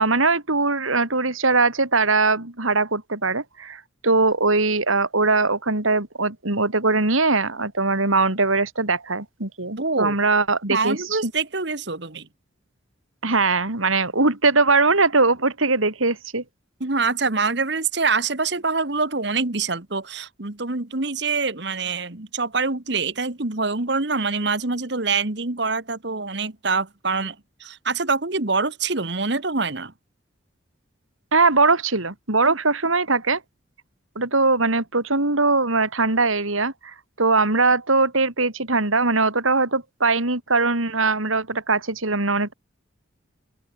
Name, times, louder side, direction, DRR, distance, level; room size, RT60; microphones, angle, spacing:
voice 1, 0.0-11.0 11.2-11.3 13.2-16.4 31.3-33.4 34.2-42.5, right 3 dB, 90° right, 4.2 m, -21 dB
voice 2, 9.8-10.2 10.7-12.3 14.2-14.3 16.8-29.9 32.4-32.6, right 4 dB, 55° right, 1.6 m, -25 dB
open air
head